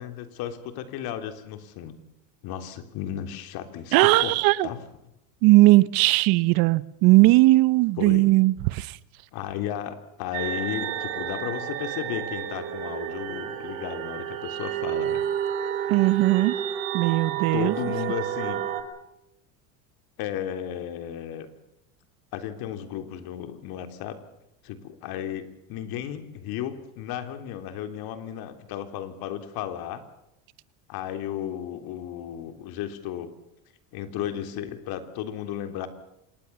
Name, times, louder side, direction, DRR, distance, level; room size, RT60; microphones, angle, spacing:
voice 1, 0.0-2.0 2.4-4.8 8.0-8.3 9.3-15.2 15.8-15.9 17.5-18.6 20.2-21.5 22.3-24.2 24.6-30.0 30.9-33.3 33.9-35.9, left 10 dB, 65° left, 3.5 m, -34 dB
voice 2, 3.9-4.7 5.4-8.9 15.9-16.5 16.9-17.7, right 20 dB, 65° right, 1.1 m, -18 dB
sound 1, 10.3-18.8, right 10 dB, 80° right, 4.3 m, -31 dB
26.5 x 20.0 x 7.0 m
supercardioid pair, 100°, 40 cm